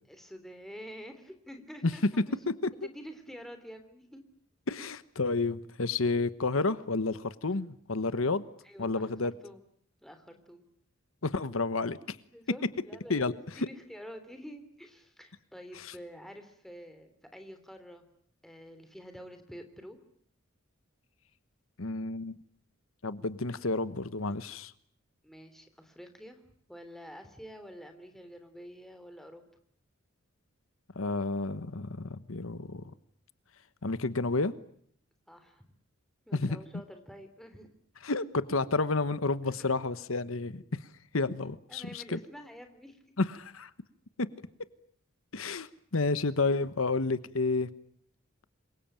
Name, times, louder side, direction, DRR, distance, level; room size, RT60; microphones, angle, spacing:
voice 1, 0.1-2.5 2.8-4.2 8.6-9.6 10.0-10.6 12.1-18.0 18.4-20.0 25.2-26.4 26.7-29.4 35.3-35.6 36.3-37.7 39.4-39.5 41.7-43.2, equal, ahead, 7 dB, 3.3 m, -48 dB
voice 2, 4.7-8.4 8.8-9.3 11.2-12.2 13.1-13.3 21.8-22.4 23.0-24.7 30.9-32.8 33.8-34.5 36.3-36.5 38.0-40.8 41.1-42.2 43.2-43.7 45.3-47.7, left 3 dB, 80° left, 14 dB, 1.2 m, -30 dB
27.5 x 23.0 x 8.9 m, 0.65 s
head